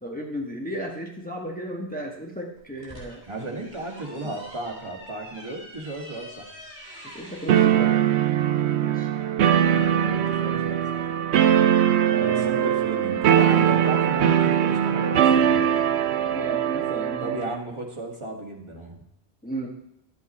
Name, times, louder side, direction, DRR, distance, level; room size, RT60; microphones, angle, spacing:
voice 1, 0.0-3.2 4.2-4.4 7.0-8.1 8.8-9.1 12.1-12.7 16.3-17.4 19.4-19.7, equal, 10° left, -1 dB, 1.1 m, -34 dB
sound 1, 2.6-7.7, equal, 10° right, 4.1 m, -45 dB
voice 2, 3.3-6.5 9.7-11.1 12.2-15.7 17.2-19.0, right 2 dB, 25° right, 0 dB, 1.7 m, -34 dB
sound 2, 7.5-17.6, right 9 dB, 85° right, 0.9 m, -21 dB
11.0 x 8.3 x 4.2 m, 0.82 s
omnidirectional pair, 1.1 m